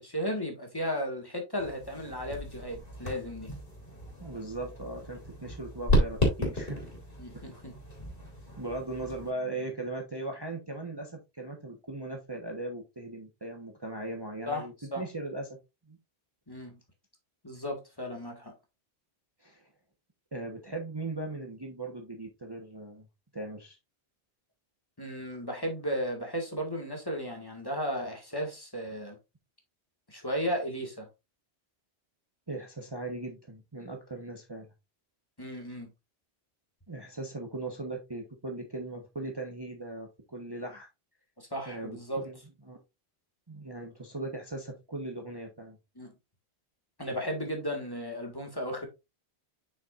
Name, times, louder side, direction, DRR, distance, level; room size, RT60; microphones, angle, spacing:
voice 1, 0.0-3.5 7.2-7.7 14.5-15.0 16.5-16.8 17.4-18.5 25.0-29.2 30.1-31.1 35.4-35.9 41.4-42.2 46.0-46.1 47.0-48.9, equal, 20° left, 1.8 m, -35 dB
sound 1, 1.6-9.3, equal, 55° left, 2.9 m, -33 dB
voice 2, 4.2-6.8 7.3-7.4 8.6-15.6 15.9-16.0 19.4-19.7 20.3-23.1 23.3-23.8 32.5-34.7 36.9-40.9 41.7-42.4 42.7-42.8 43.5-45.8, right 2 dB, 25° right, 1.1 m, -38 dB
7.3 x 6.0 x 2.5 m
omnidirectional pair, 1.1 m